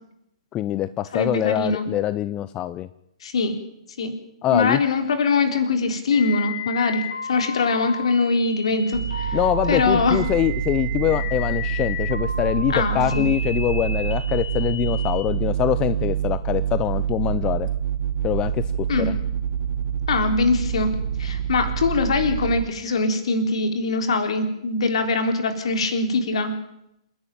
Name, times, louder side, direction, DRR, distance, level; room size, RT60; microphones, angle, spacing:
voice 1, 0.5-2.9 4.4-4.8 9.3-17.7 18.2-18.6 19.0-19.1, left 13 dB, 25° left, 14 dB, 0.7 m, -24 dB
voice 2, 1.1-1.9 3.2-3.6 4.0-4.1 4.5-9.4 9.7-10.2 12.7-13.3 18.9-19.1 20.1-20.9 21.2-26.5, left 3 dB, 65° left, 6 dB, 3.8 m, -22 dB
sound 1, 6.1-15.1, left 4 dB, 85° left, 6.8 m, -33 dB
sound 2, 8.9-22.6, right 9 dB, 75° right, 1.5 m, -26 dB
28.0 x 11.0 x 9.2 m, 0.82 s
hypercardioid pair, 120°, 3 cm